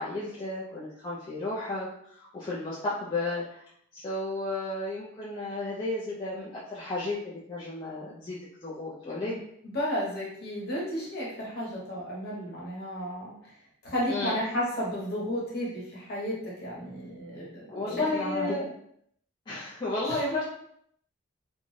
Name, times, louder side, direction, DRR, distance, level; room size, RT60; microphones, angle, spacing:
voice 1, 0.0-3.6 3.9-9.4 14.1-14.4 17.7-18.7 19.5-20.4, left 2 dB, 20° left, -8 dB, 0.4 m, -33 dB
voice 2, 9.0-9.4 9.7-13.3 13.8-18.6 20.1-20.2, equal, 45° left, -6 dB, 1.1 m, -33 dB
2.5 x 2.2 x 3.1 m, 0.70 s
head